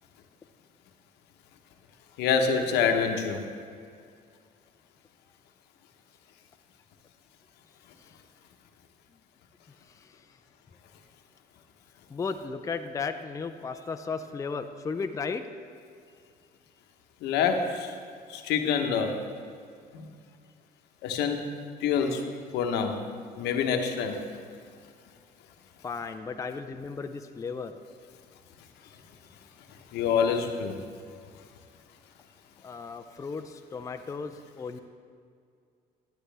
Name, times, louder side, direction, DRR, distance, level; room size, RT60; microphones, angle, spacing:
voice 1, 2.2-3.4 17.2-17.9 18.3-19.2 19.9-20.1 21.0-21.5 21.8-22.2 22.5-23.0 23.4-24.2 29.9-30.8, left 6 dB, 85° left, 4 dB, 1.0 m, -26 dB
voice 2, 12.1-15.4 25.8-27.8 28.8-28.9 32.6-34.8, left 5 dB, 20° left, 7 dB, 0.4 m, -35 dB
12.0 x 9.2 x 3.4 m, 2.2 s
cardioid pair, 110°, 17 cm